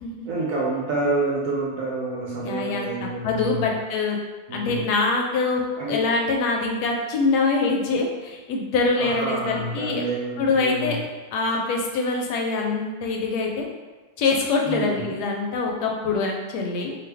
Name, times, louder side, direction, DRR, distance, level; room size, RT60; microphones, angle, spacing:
voice 1, 0.3-3.7 4.5-4.8 5.8-6.0 9.0-11.0 14.7-15.1, right 2 dB, 70° right, -5 dB, 0.9 m, -28 dB
voice 2, 2.4-4.2 4.5-5.6 5.9-10.0 10.4-11.0 11.3-13.6 14.2-16.9, left 3 dB, 85° left, 1 dB, 1.1 m, -24 dB
2.6 x 2.4 x 3.3 m, 1.3 s
omnidirectional pair, 1.7 m